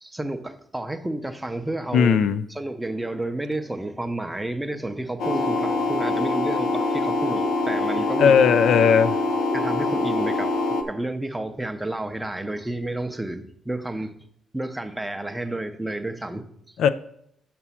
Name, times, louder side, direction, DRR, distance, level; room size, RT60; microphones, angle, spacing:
voice 1, 0.0-2.2 2.5-8.4 9.5-10.6 10.8-14.1 14.5-16.7, right 1 dB, 5° right, 0.5 m, -31 dB
voice 2, 1.9-2.4 8.2-9.2 16.8-16.9, left 7 dB, 65° left, 0.4 m, -17 dB
sound 1, 5.2-10.8, left 2 dB, 85° left, 0.8 m, -24 dB
6.1 x 5.9 x 5.6 m
cardioid pair, 145°, 0 cm